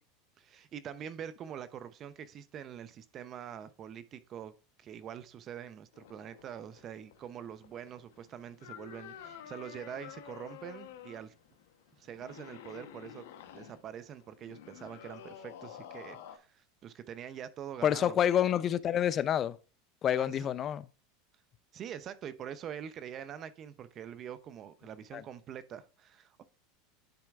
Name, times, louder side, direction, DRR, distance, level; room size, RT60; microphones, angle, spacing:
voice 1, 0.4-4.5 4.8-11.3 12.0-13.2 13.5-18.2 20.2-20.5 21.7-26.4, right 9 dB, 40° right, 0.7 m, -44 dB
sound 1, 5.9-16.4, left 9 dB, 80° left, 0.9 m, -50 dB
voice 2, 17.8-19.6 20.0-20.9 25.1-25.2, left 10 dB, 35° left, 0.5 m, -28 dB
10.5 x 4.4 x 2.4 m
supercardioid pair, 115°, 0 cm